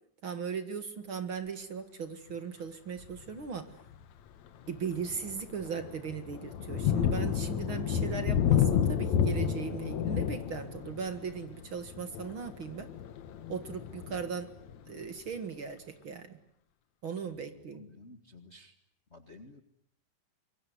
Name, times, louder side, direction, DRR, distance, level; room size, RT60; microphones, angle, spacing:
voice 1, 0.2-3.7 4.7-12.9 13.5-14.5 14.9-16.4 17.0-17.8, right 6 dB, 45° right, 9 dB, 2.4 m, -38 dB
Thunder, 3.0-3.3 3.9-4.0 4.5-15.0, left 8 dB, 70° left, 2.5 m, -31 dB
voice 2, 18.0-18.7 19.1-19.6, left 2 dB, 25° left, 6 dB, 1.7 m, -52 dB
26.0 x 23.5 x 9.5 m, 0.69 s
omnidirectional pair, 3.4 m